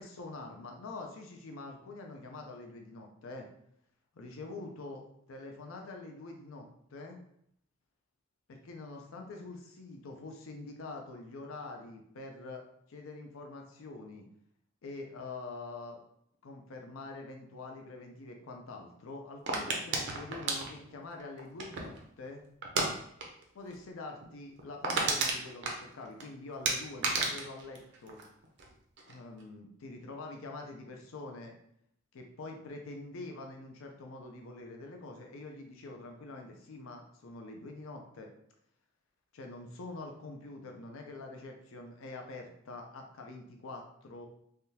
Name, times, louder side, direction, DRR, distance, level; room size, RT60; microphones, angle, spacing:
voice 1, 0.0-3.5 4.1-5.0 5.3-6.7 6.9-7.2 8.5-14.2 14.8-16.0 16.4-22.4 23.5-28.2 29.1-31.5 32.1-38.3 39.3-44.3, left 2 dB, 75° left, 3 dB, 0.5 m, -45 dB
sound 1, 19.5-22.0 22.6-22.9 23.2-23.4 23.7-23.8 24.2-24.3 24.6-26.2 26.6-28.7 29.0-29.4, right 3 dB, 60° right, 0.6 m, -32 dB
3.4 x 2.2 x 2.7 m, 0.71 s
head